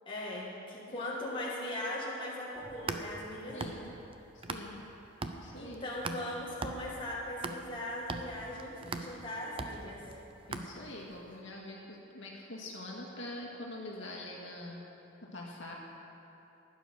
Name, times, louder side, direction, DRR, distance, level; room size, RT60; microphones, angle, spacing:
voice 1, 0.1-3.6 5.5-10.1, left 1 dB, 25° left, -5 dB, 2.1 m, -39 dB
sound 1, 2.6-4.9 5.2-11.1, right 3 dB, 25° right, 0.6 m, -41 dB
voice 2, 3.5-3.9 4.3-4.9 5.4-5.8 10.5-14.8 15.3-15.7, left 1 dB, 60° left, -2 dB, 2.0 m, -44 dB
15.0 x 9.4 x 6.5 m, 3.0 s
head